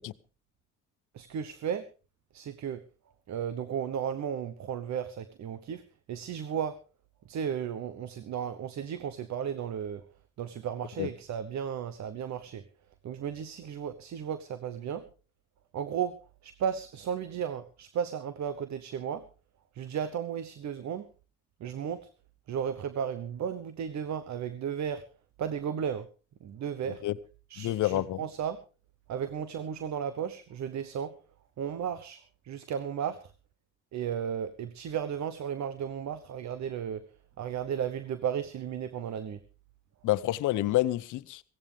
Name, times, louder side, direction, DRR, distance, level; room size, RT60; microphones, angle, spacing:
voice 1, 1.1-1.8 2.3-2.8 3.3-5.8 6.1-6.8 7.3-10.0 10.4-12.6 13.0-15.0 15.7-16.2 16.4-19.2 19.7-21.1 21.6-22.1 22.5-25.0 25.4-26.1 26.4-27.0 27.5-28.6 29.1-31.1 31.6-32.2 32.4-33.3 33.9-37.0 37.4-39.4, right 8 dB, 65° right, 1.1 m, -34 dB
voice 2, 27.6-28.2 40.0-41.4, left 15 dB, 80° left, 0.8 m, -28 dB
17.0 x 16.0 x 3.4 m
cardioid pair, 90°, 30 cm